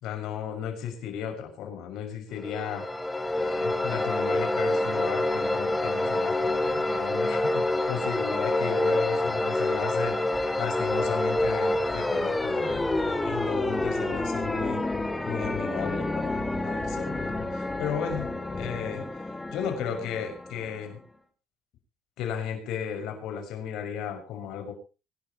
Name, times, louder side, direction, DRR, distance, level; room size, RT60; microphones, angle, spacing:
voice 1, 0.0-2.9 3.3-10.2 10.6-14.8 15.3-18.3 18.6-21.0 22.2-24.7, left 8 dB, 75° left, 5 dB, 6.4 m, -35 dB
sound 1, 2.4-21.0, left 1 dB, 10° left, 2.8 m, -28 dB
sound 2, 10.1-19.1, left 5 dB, 35° left, 5.5 m, -43 dB
24.5 x 12.0 x 3.1 m, 0.32 s
cardioid pair, 105°, 0 cm